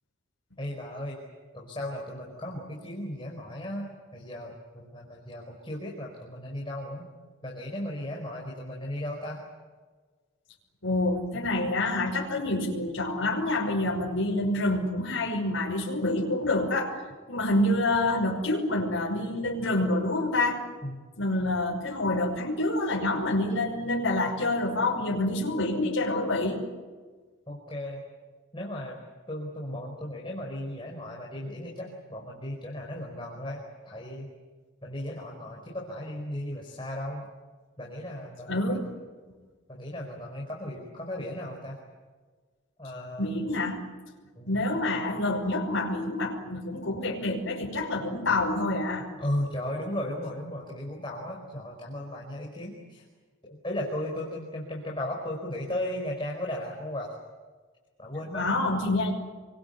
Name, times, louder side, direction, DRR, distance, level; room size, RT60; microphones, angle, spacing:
voice 1, 0.6-1.2 1.5-7.1 7.4-9.5 20.8-21.0 27.5-28.0 28.5-29.0 29.3-34.3 34.8-37.3 37.8-38.8 39.7-41.8 42.8-43.3 44.4-44.6 49.2-53.0 53.5-57.2 58.0-58.5, left 1 dB, 25° left, -1 dB, 4.8 m, -36 dB
voice 2, 10.8-16.9 17.3-20.6 21.2-26.7 38.5-38.9 43.2-43.8 44.5-49.1 58.3-59.1, left 2 dB, 65° left, -3 dB, 5.7 m, -27 dB
29.0 x 24.0 x 8.1 m, 1.4 s
head